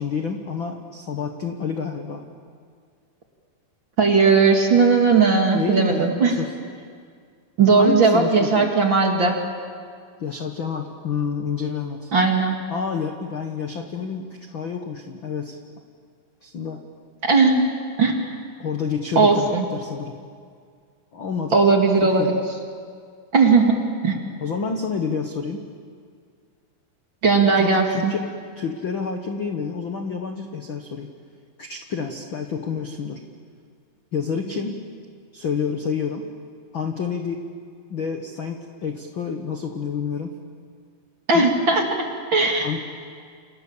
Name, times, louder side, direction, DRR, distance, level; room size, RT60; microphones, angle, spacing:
voice 1, 0.0-2.2 5.5-6.5 7.7-8.7 10.2-12.1 12.7-15.6 16.4-16.8 18.6-20.1 21.1-21.6 22.0-22.4 24.4-25.6 27.5-31.1 31.6-33.2 34.1-34.8 35.3-36.2 36.7-37.4 37.9-40.3 41.3-41.5 42.6-42.8, left 5 dB, 75° left, 4 dB, 1.1 m, -28 dB
voice 2, 4.0-6.3 7.6-9.4 12.1-12.6 17.2-17.6 18.0-18.2 19.2-19.6 21.5-22.4 23.3-23.7 24.0-24.2 27.2-28.1 41.3-42.1 42.3-42.7, right 4 dB, 35° right, 2 dB, 2.3 m, -17 dB
29.5 x 27.5 x 7.3 m, 2.1 s
omnidirectional pair, 4.6 m